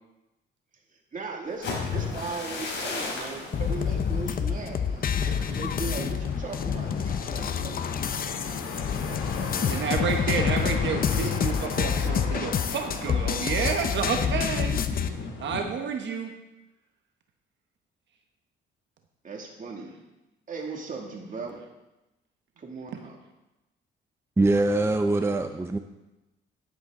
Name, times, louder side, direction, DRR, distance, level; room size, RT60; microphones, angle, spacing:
voice 1, 1.1-7.9 9.0-10.5 11.2-11.4 12.3-12.5 19.2-19.9 20.5-21.6 22.6-23.2, right 4 dB, 40° right, 0 dB, 2.4 m, -38 dB
sound 1, 1.5-9.3 9.7-10.0 10.4-10.8, left 4 dB, 65° left, 3.5 m, -37 dB
sound 2, 2.5-15.6, left 4 dB, 85° left, 2.0 m, -38 dB
sound 3, 3.5-15.1, left 7 dB, 45° left, 0.7 m, -28 dB
voice 2, 9.7-14.8 15.4-16.4 22.9-23.0, right 6 dB, 65° right, 4 dB, 1.1 m, -30 dB
voice 3, 24.4-25.8, right 2 dB, 15° right, 6 dB, 0.6 m, -23 dB
11.0 x 10.5 x 3.8 m, 1.0 s
cardioid pair, 90°, 20 cm